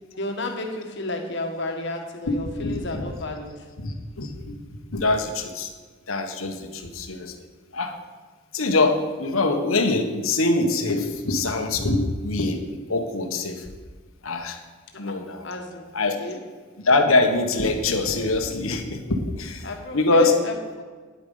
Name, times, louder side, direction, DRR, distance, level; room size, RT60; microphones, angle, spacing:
voice 1, 0.2-3.7 14.9-15.9 16.2-16.4 19.6-20.8, left 2 dB, 60° left, 4 dB, 1.6 m, -32 dB
voice 2, 2.3-3.0 3.8-4.6 4.9-5.7 6.1-7.3 7.7-8.0 8.5-13.7 14.2-14.6 15.0-15.5 15.9-16.2 16.8-20.4, left 2 dB, 85° left, 5 dB, 1.3 m, -24 dB
10.0 x 8.5 x 5.5 m, 1.4 s
head